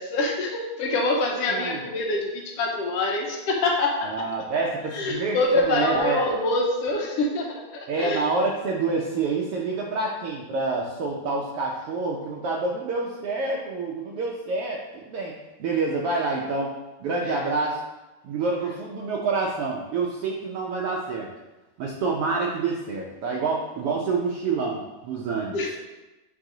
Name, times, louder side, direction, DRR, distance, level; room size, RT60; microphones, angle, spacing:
voice 1, 0.0-4.1 4.9-8.3 17.3-17.4 25.5-25.7, left 2 dB, 70° left, 0 dB, 1.6 m, -25 dB
voice 2, 1.5-1.8 4.0-6.2 7.9-15.3 15.6-16.7 17.0-17.8 18.2-21.3 21.8-25.6, right 3 dB, 90° right, -2 dB, 1.2 m, -27 dB
8.9 x 3.6 x 3.8 m, 1.1 s
omnidirectional pair, 3.5 m